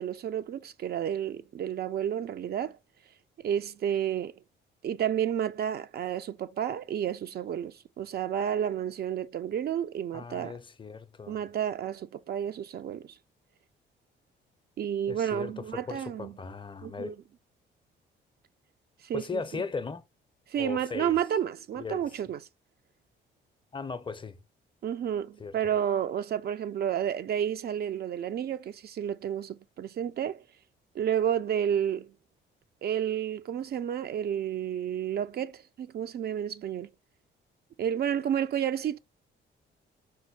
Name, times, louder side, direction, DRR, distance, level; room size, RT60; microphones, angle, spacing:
voice 1, 0.0-2.8 3.4-4.3 4.8-10.5 11.3-13.1 14.8-16.3 16.8-17.1 19.0-19.6 20.5-22.4 24.8-30.4 30.9-32.1 32.8-36.9 37.8-39.0, right 9 dB, 55° right, 0.4 m, -31 dB
voice 2, 10.1-11.4 15.1-17.2 19.1-20.1 20.6-21.2 21.7-22.2 23.7-24.4 25.4-25.6, left 4 dB, 25° left, 0.5 m, -37 dB
4.3 x 2.2 x 4.5 m
cardioid pair, 90°, 20 cm